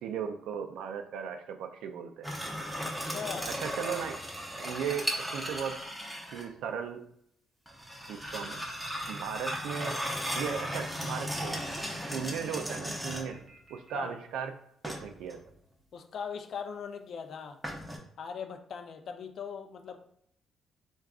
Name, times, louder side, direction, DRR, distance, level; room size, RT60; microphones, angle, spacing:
voice 1, 0.0-2.3 3.6-4.2 4.6-5.1 5.3-5.8 6.3-7.0 8.1-8.7 9.1-10.0 10.3-11.6 12.0-13.4 13.7-14.5 14.9-15.4, right 7 dB, 85° right, 6 dB, 0.3 m, -36 dB
sound 1, 2.2-6.5 7.7-13.4 14.8-15.4 17.6-18.0, equal, 5° right, 0.6 m, -36 dB
voice 2, 2.8-3.5 13.9-14.1 15.9-17.6 18.2-20.0, left 6 dB, 60° left, 6 dB, 0.4 m, -40 dB
sound 2, 9.1-14.0, right 2 dB, 40° right, 0.8 m, -56 dB
3.5 x 2.3 x 2.3 m, 0.72 s
cardioid pair, 90°, 0 cm